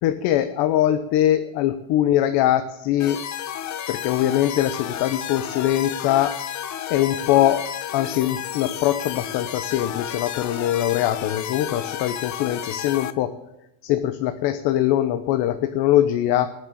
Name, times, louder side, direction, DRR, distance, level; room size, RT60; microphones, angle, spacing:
voice 1, 0.0-3.2 3.9-6.4 6.9-7.6 7.9-13.3 13.8-16.5, left 12 dB, 75° left, 9 dB, 1.0 m, -22 dB
sound 1, 3.0-13.1, left 10 dB, 45° left, 1.0 m, -32 dB
20.0 x 6.7 x 8.5 m, 0.88 s
cardioid pair, 140°, 40 cm